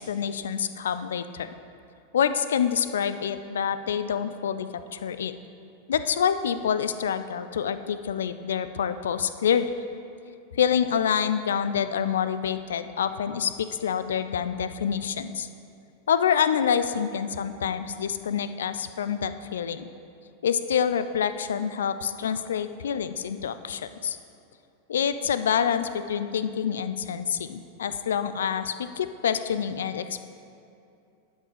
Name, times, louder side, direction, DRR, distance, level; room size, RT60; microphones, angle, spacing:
voice 1, 0.0-1.5 2.1-5.3 5.9-9.7 10.5-15.5 16.1-19.9 20.4-24.2 24.9-30.2, left 8 dB, 65° left, 12 dB, 0.4 m, -27 dB
11.5 x 5.3 x 5.0 m, 2.6 s
figure-of-eight pair, 90°, 0 cm